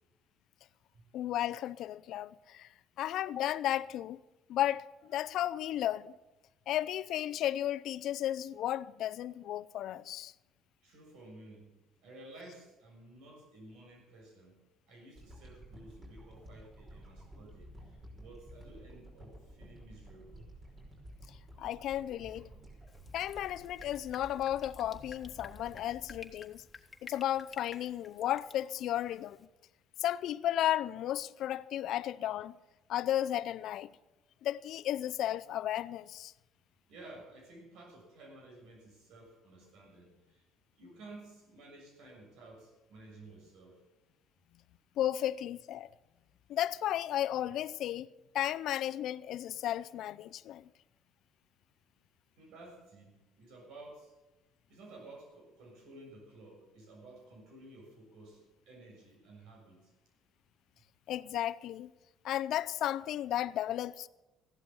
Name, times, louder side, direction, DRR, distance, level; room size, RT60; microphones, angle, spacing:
voice 1, 1.1-2.7 3.0-4.2 4.5-6.1 6.7-10.3 21.6-22.5 23.1-26.6 27.0-29.4 30.0-32.6 32.9-33.9 34.4-36.3 45.0-45.9 46.5-48.1 48.3-50.7 61.1-61.9 62.2-64.1, left 12 dB, 70° left, 0.6 m, -34 dB
voice 2, 10.8-11.7 12.0-20.5 25.7-25.9 36.9-40.4 40.7-43.8 52.4-54.1 54.7-59.9, right 2 dB, 80° right, 6.6 m, -53 dB
sound 1, 15.2-27.5 27.9-28.0, right 1 dB, 30° right, 5.5 m, -53 dB
Drip, 22.9-29.5, left 5 dB, 30° left, 1.6 m, -53 dB
15.0 x 11.5 x 7.1 m
cardioid pair, 100°, 0 cm